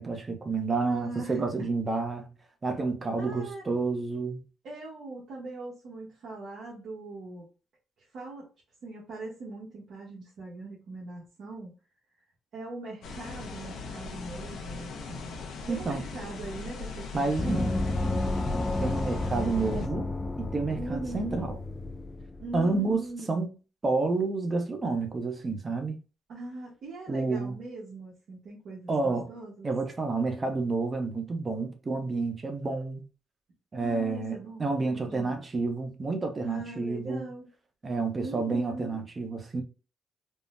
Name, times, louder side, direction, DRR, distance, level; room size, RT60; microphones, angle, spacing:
voice 1, 0.0-2.3 2.6-4.4 15.7-16.0 17.1-17.7 18.8-20.1 20.4-21.6 22.5-23.5 23.8-26.0 27.1-27.5 28.9-29.3 29.6-33.0 33.7-37.2 37.8-39.6, right 3 dB, 30° right, 0.7 m, -29 dB
voice 2, 0.8-1.7 3.2-3.6 4.6-7.5 8.0-8.5 8.8-11.8 12.5-18.2 20.8-21.5 22.4-23.5 26.3-29.8 33.8-35.4 36.4-37.5 38.2-39.0, right 2 dB, 70° right, 1.0 m, -41 dB
sound 1, 13.0-19.9, left 3 dB, 75° left, 0.7 m, -39 dB
Gong, 17.4-22.6, left 2 dB, 20° left, 0.4 m, -31 dB
3.6 x 2.0 x 2.5 m
cardioid pair, 90°, 0 cm